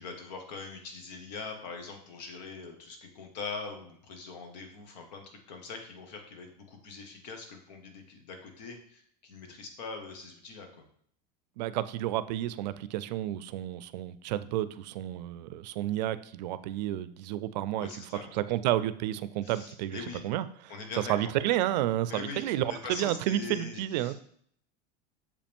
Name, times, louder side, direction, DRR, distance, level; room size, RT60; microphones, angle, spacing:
voice 1, 0.0-10.8 17.8-18.4 19.4-20.2 20.7-21.1 22.1-24.1, left 4 dB, 80° left, 3 dB, 1.6 m, -42 dB
voice 2, 11.6-20.7 21.1-24.1, right 13 dB, 85° right, 15 dB, 0.5 m, -31 dB
7.0 x 5.0 x 3.6 m, 0.64 s
supercardioid pair, 180°, 21 cm